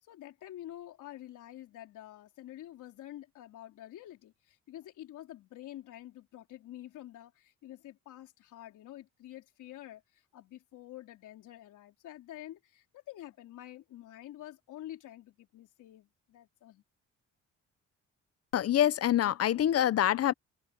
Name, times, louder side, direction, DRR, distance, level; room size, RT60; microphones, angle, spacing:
voice 1, 0.0-16.8, left 13 dB, 85° left, 3.8 m, -48 dB
voice 2, 18.5-20.3, left 11 dB, 55° left, 0.8 m, -26 dB
cardioid pair, 90°, 30 cm